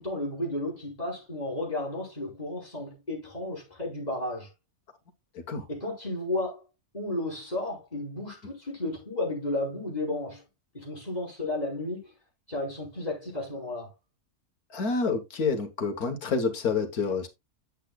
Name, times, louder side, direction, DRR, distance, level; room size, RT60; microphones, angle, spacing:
voice 1, 0.0-4.5 5.7-6.6 6.9-10.4 10.7-12.1 12.5-13.9, left 2 dB, 30° left, 5.0 m, -33 dB
voice 2, 14.7-17.3, left 4 dB, 85° left, 1.9 m, -28 dB
9.8 x 8.4 x 2.4 m
omnidirectional pair, 1.5 m